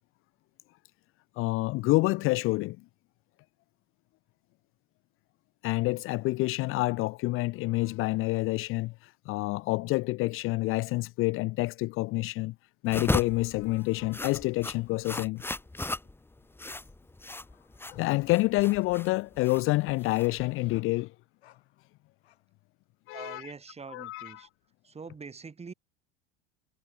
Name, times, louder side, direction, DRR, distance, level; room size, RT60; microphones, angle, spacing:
voice 1, 1.4-2.8 5.6-12.5 12.8-15.4 18.0-21.1 23.1-23.4 23.9-24.3, left 21 dB, 40° left, 0.6 m, -28 dB
sound 1, 12.9-20.8, left 2 dB, 5° left, 1.9 m, -36 dB
sound 2, 17.4-21.8 22.2-22.4, left 14 dB, 70° left, 3.2 m, -58 dB
voice 2, 23.1-24.5 24.8-25.7, right 5 dB, 20° right, 4.1 m, -44 dB
figure-of-eight pair, 80°, 34 cm